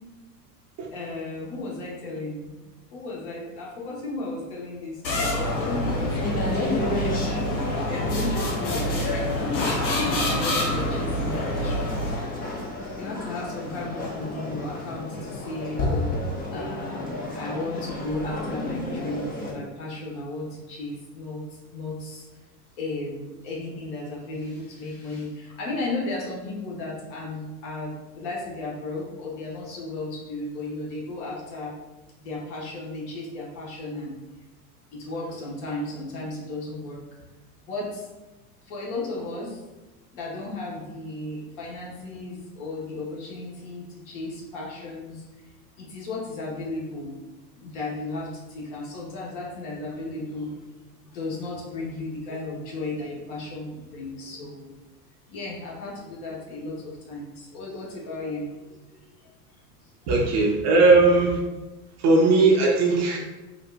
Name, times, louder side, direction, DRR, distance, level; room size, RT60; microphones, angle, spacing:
voice 1, 0.9-2.6 2.9-9.7 9.9-12.2 13.0-22.3 22.8-31.7 32.2-34.2 34.9-37.0 37.6-38.1 38.6-39.6 40.1-45.5 45.8-47.1 47.6-50.6 51.1-54.7 55.3-59.3 59.8-59.9, left 2 dB, 60° left, -3 dB, 1.2 m, -35 dB
sound 1, 5.0-12.4, left 1 dB, 85° left, 0.9 m, -27 dB
sound 2, 5.4-19.5, left 2 dB, 20° left, 0.4 m, -32 dB
voice 2, 60.1-61.4 62.0-63.2, right 3 dB, 35° right, -1 dB, 0.6 m, -18 dB
4.0 x 2.4 x 2.2 m, 1.1 s
hypercardioid pair, 90°, 49 cm